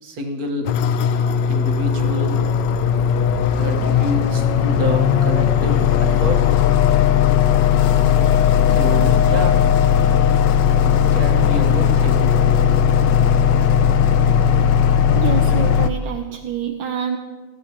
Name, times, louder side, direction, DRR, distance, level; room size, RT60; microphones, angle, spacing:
voice 1, 0.0-0.7 1.5-2.4 3.6-6.6 8.7-9.6 10.8-12.3, equal, 50° right, 2 dB, 1.8 m, -28 dB
sound 1, 0.7-15.9, left 8 dB, 70° left, 1.2 m, -17 dB
voice 2, 15.1-17.2, right 8 dB, 75° right, 4 dB, 1.4 m, -26 dB
19.5 x 14.5 x 2.9 m, 1.3 s
omnidirectional pair, 2.2 m